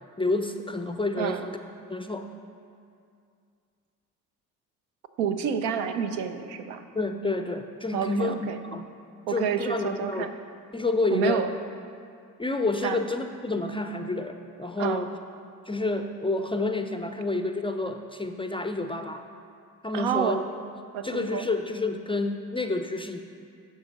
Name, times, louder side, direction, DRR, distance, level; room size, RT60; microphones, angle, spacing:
voice 1, 0.2-1.6 1.9-2.3 7.0-8.9 9.3-10.3 10.7-11.5 12.4-15.1 15.7-19.2 19.8-20.5 21.0-23.2, left 2 dB, 15° left, 6 dB, 0.4 m, -29 dB
voice 2, 5.2-6.9 7.9-8.6 9.3-10.3 11.1-11.5 12.8-13.0 14.8-15.1 19.9-20.4 20.9-21.5, right 7 dB, 75° right, 8 dB, 0.6 m, -29 dB
12.0 x 4.8 x 4.1 m, 2.3 s
hypercardioid pair, 40°, 44 cm